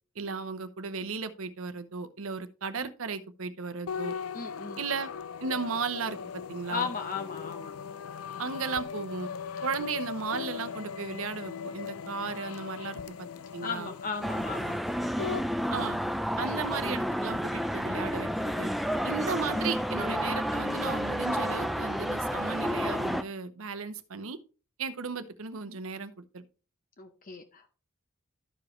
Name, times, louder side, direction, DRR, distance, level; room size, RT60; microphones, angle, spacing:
voice 1, 0.2-4.1 4.8-5.1 5.4-6.9 8.4-9.3 9.6-13.3 13.5-13.9 15.7-16.0 16.4-18.7 19.0-24.4 24.8-26.4, right 5 dB, 80° right, 0.8 m, -35 dB
sound 1, 3.9-15.5, left 6 dB, 90° left, 0.5 m, -39 dB
voice 2, 4.3-4.8 6.7-7.8 9.8-9.9 13.6-14.8 27.0-27.7, left 5 dB, 40° left, 0.7 m, -36 dB
sound 2, 14.2-23.2, equal, ahead, 0.4 m, -30 dB
13.0 x 4.9 x 3.1 m
head